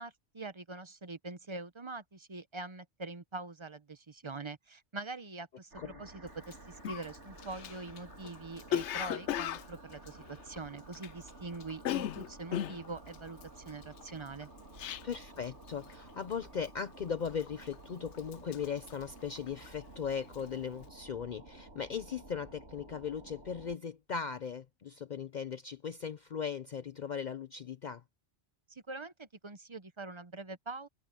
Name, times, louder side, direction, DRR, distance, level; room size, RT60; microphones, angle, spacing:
voice 1, 0.0-14.5 28.7-30.9, right 3 dB, 30° right, 0.8 m, -44 dB
sound 1, 5.7-23.8, right 2 dB, 85° right, 4.1 m, -53 dB
Cough, 6.4-6.5 6.8-11.3 11.6-15.4 15.7-16.0 16.3-16.8 17.3-17.8 18.1-19.8 20.1-20.5, left 11 dB, 80° left, 0.9 m, -37 dB
voice 2, 15.0-28.0, left 7 dB, 50° left, 0.6 m, -38 dB
omnidirectional pair, 1.2 m